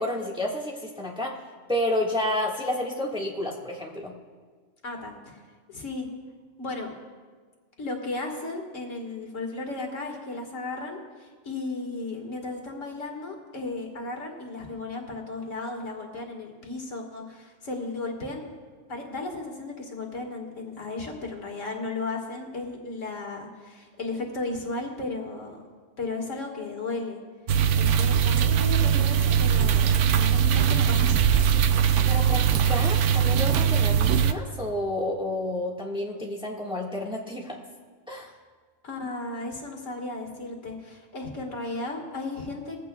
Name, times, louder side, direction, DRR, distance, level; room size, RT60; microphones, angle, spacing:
voice 1, 0.0-1.4 1.7-4.1 31.9-37.6 38.1-38.3, left 1 dB, 5° right, -3 dB, 1.6 m, -30 dB
voice 2, 4.8-5.4 5.7-6.1 6.6-6.9 7.8-18.5 18.9-25.6 26.0-27.2 27.8-31.3 38.8-42.8, left 3 dB, 75° left, 1 dB, 2.1 m, -35 dB
sound 1, 27.5-34.3, right 8 dB, 70° right, 0.9 m, -21 dB
20.5 x 15.5 x 2.3 m, 1.5 s
omnidirectional pair, 1.3 m